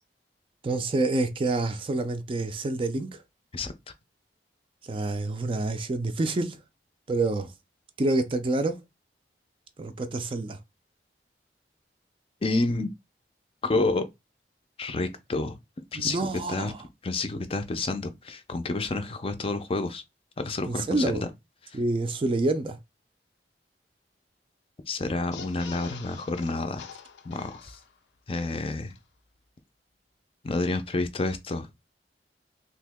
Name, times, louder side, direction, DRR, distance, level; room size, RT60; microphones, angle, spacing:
voice 1, 0.6-3.2 4.8-6.6 7.1-7.5 8.0-8.8 9.8-10.6 15.9-16.8 20.7-21.3 21.7-22.8, right 2 dB, 30° right, 0.4 m, -27 dB
voice 2, 12.4-12.9 13.6-14.1 14.8-15.6 15.9-16.7 17.0-20.0 20.4-21.3 24.9-26.9 27.2-27.8 28.3-28.9 30.4-31.7, left 2 dB, 35° left, 0.4 m, -29 dB
sound 1, 25.3-28.2 28.5-28.6 28.9-29.0, left 6 dB, 90° left, 0.5 m, -45 dB
2.9 x 2.7 x 3.4 m
head